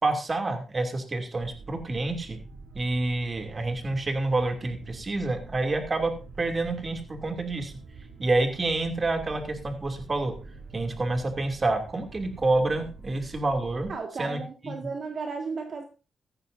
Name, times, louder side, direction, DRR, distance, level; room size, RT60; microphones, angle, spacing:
voice 1, 0.0-2.4 2.7-7.7 8.2-10.3 10.7-13.9 14.2-14.4 14.6-14.7, right 2 dB, 30° right, 6 dB, 2.6 m, -28 dB
sound 1, 1.4-14.0, right 4 dB, 80° right, 3.4 m, -46 dB
voice 2, 13.9-15.9, right 4 dB, 50° right, 4 dB, 1.8 m, -34 dB
15.5 x 13.5 x 2.7 m, 0.32 s
cardioid pair, 125°, 0 cm